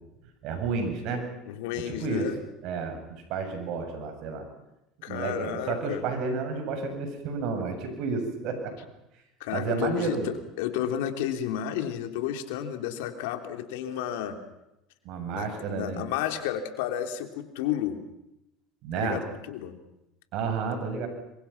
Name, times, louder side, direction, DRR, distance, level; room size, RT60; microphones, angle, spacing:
voice 1, 0.4-1.2 1.9-2.3 2.6-4.4 5.1-8.7 9.5-10.3 15.0-16.0 18.8-19.2 20.3-21.1, right 4 dB, 65° right, 6 dB, 7.9 m, -31 dB
voice 2, 1.5-2.4 5.0-6.0 9.4-14.4 15.3-18.0 19.0-19.8, left 10 dB, 80° left, 6 dB, 3.2 m, -32 dB
27.0 x 24.0 x 5.9 m, 0.89 s
supercardioid pair, 85°, 0 cm